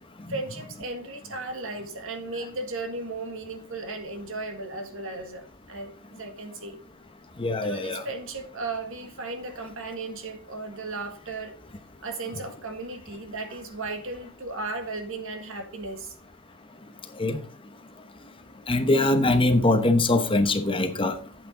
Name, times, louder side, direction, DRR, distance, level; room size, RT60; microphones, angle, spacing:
voice 1, 0.3-6.8 7.6-11.5 12.0-16.1, right 3 dB, 65° right, 1.8 m, -35 dB
voice 2, 7.4-8.0 17.2-17.4 18.7-21.1, left 2 dB, 25° left, 1.0 m, -22 dB
8.6 x 8.3 x 3.8 m
head